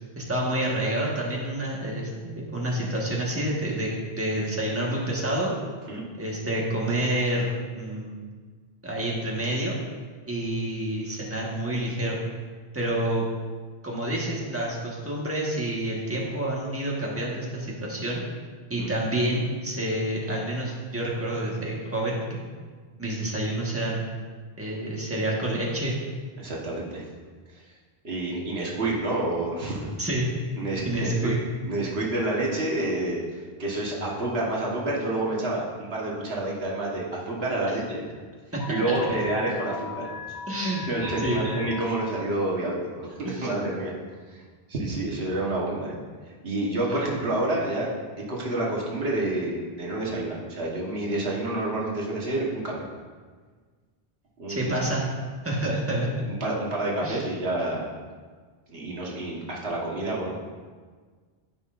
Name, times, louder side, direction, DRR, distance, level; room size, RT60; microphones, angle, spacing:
voice 1, 0.2-3.9 4.2-5.5 6.2-7.5 7.8-8.2 8.8-9.8 10.3-12.2 12.7-13.3 13.8-18.2 18.7-22.5 23.0-24.0 24.6-26.0 30.0-30.3 30.8-31.4 37.7-37.8 38.5-38.6 40.5-40.8 41.2-41.4 43.2-43.5 46.9-47.0 54.5-55.0 55.4-56.1 57.0-57.3, right 1 dB, 15° right, -4 dB, 1.4 m, -28 dB
voice 2, 26.4-27.0 28.0-29.9 30.6-31.3 31.6-38.0 38.7-40.1 40.5-43.9 44.3-44.4 44.7-46.0 46.4-47.9 48.3-52.8 54.4-54.8 55.6-55.7 56.2-57.9 58.7-60.5, right 2 dB, 85° right, -3 dB, 1.6 m, -29 dB
Alarm, 38.6-42.1, left 6 dB, 75° left, 2.2 m, -38 dB
13.0 x 5.5 x 2.6 m, 1.5 s
omnidirectional pair, 1.0 m